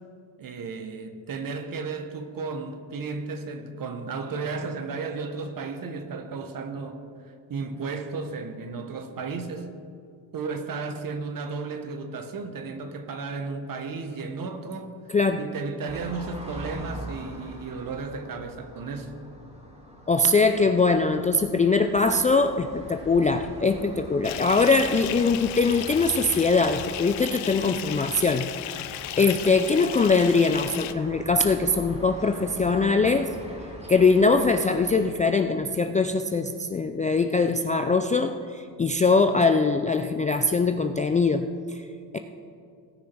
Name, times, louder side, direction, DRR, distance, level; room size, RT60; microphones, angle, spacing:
voice 1, 0.4-7.1 7.5-9.7 10.3-14.9 15.4-19.1, right 4 dB, 45° right, 7 dB, 1.3 m, -34 dB
voice 2, 15.1-15.5 20.1-28.5 28.8-33.3 33.9-41.8 42.1-42.2, left 3 dB, 20° left, 7 dB, 0.3 m, -22 dB
sound 1, 15.9-35.1, equal, 15° right, 2.9 m, -43 dB
Bathtub (filling or washing) / Fill (with liquid), 24.2-30.9, left 13 dB, 85° left, 0.7 m, -35 dB
17.5 x 6.1 x 4.6 m, 2.4 s
cardioid pair, 90°, 46 cm